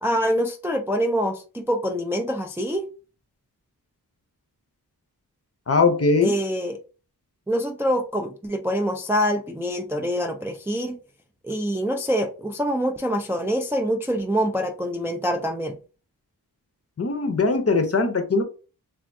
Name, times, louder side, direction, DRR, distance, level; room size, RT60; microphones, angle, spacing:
voice 1, 0.0-2.9 6.2-6.8 7.5-11.0 11.4-15.8, equal, 5° right, 0.3 m, -25 dB
voice 2, 5.7-6.4 17.0-18.4, left 3 dB, 40° left, 0.6 m, -20 dB
3.4 x 2.5 x 2.5 m
wide cardioid pair, 65°, 38 cm